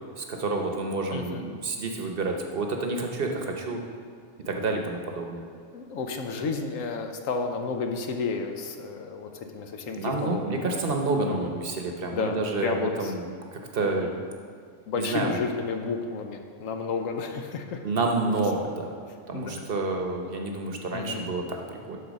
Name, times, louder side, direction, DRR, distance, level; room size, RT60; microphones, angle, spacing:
voice 1, 0.2-3.8 4.5-5.4 10.0-14.1 15.0-15.4 17.8-18.9 19.3-22.0, right 3 dB, 50° right, 3 dB, 0.9 m, -29 dB
voice 2, 1.1-1.4 5.7-10.8 11.3-11.5 12.1-13.1 13.8-14.1 14.9-17.8 19.3-19.6 20.9-21.3, left 4 dB, 85° left, 5 dB, 1.2 m, -32 dB
12.0 x 4.1 x 5.2 m, 2.2 s
omnidirectional pair, 1.3 m